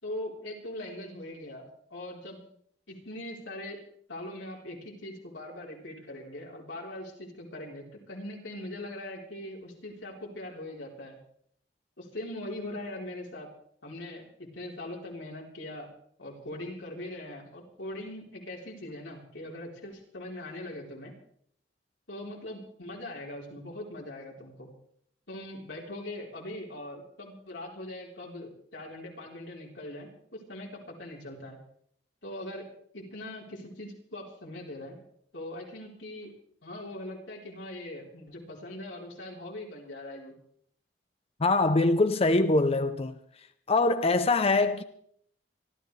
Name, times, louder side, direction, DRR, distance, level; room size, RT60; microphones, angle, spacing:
voice 1, 0.0-1.6 1.9-2.4 2.9-3.8 4.1-11.2 12.0-13.5 13.8-15.9 16.2-21.1 22.1-24.7 25.3-31.6 32.2-32.7 32.9-35.0 35.3-36.3 36.6-40.3, left 1 dB, 80° left, 4.0 m, -41 dB
voice 2, 41.4-43.2 43.7-44.8, left 2 dB, 35° left, 0.6 m, -23 dB
25.5 x 13.0 x 3.3 m
head